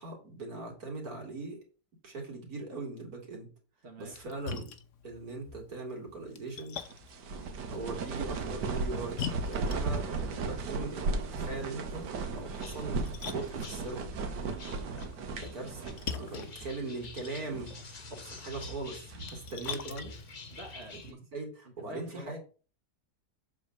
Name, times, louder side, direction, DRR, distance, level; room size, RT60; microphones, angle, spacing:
voice 1, 0.0-1.6 2.0-3.5 4.0-4.7 5.0-6.8 7.7-14.1 15.4-15.8 16.1-17.8 18.1-20.1 21.0-22.4, right 3 dB, 60° right, 0 dB, 2.9 m, -40 dB
voice 2, 3.8-4.2 7.3-7.6 14.5-14.8 20.5-21.2 21.7-22.3, right 1 dB, 40° right, 0 dB, 1.7 m, -48 dB
Splash splatter, 4.0-21.1, left 6 dB, 55° left, 1.0 m, -45 dB
sound 1, 6.8-16.3 16.6-16.7 17.3-17.8 18.4-19.5, right 3 dB, 80° right, 1.6 m, -36 dB
sound 2, 12.3-21.1, left 3 dB, 35° left, 0.7 m, -49 dB
7.8 x 3.7 x 6.6 m, 0.36 s
omnidirectional pair, 1.8 m